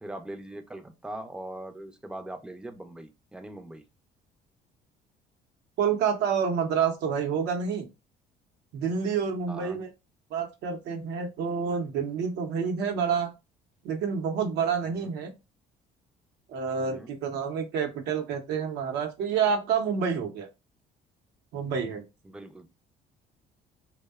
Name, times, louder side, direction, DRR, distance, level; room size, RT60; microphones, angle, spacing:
voice 1, 0.0-3.8 9.5-9.8 14.9-15.1 16.8-17.1 22.2-22.7, right 1 dB, 5° right, 8 dB, 0.4 m, -41 dB
voice 2, 5.8-7.9 8.7-9.9 10.3-13.3 13.8-15.3 16.5-20.5 21.5-22.0, right 6 dB, 80° right, 5 dB, 0.6 m, -28 dB
2.6 x 2.0 x 2.2 m, 0.26 s
cardioid pair, 95°, 17 cm